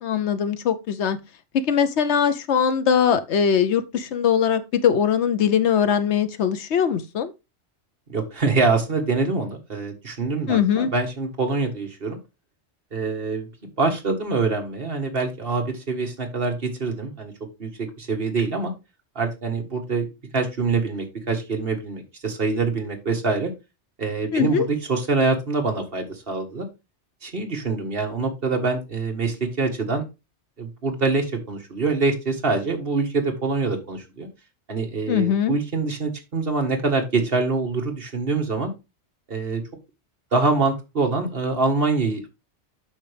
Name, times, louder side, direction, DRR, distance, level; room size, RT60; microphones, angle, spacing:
voice 1, 0.0-1.2 1.7-7.3 10.5-10.9 24.3-24.7 35.1-35.5, left 8 dB, 70° left, 1.1 m, -21 dB
voice 2, 8.1-12.2 12.9-13.5 13.8-17.3 17.6-18.7 19.1-20.1 20.3-23.5 24.0-26.7 27.2-30.0 30.6-34.3 34.7-38.7 39.3-39.6 40.3-42.3, right 3 dB, 50° right, 1.8 m, -25 dB
8.5 x 5.9 x 3.4 m
omnidirectional pair, 1.2 m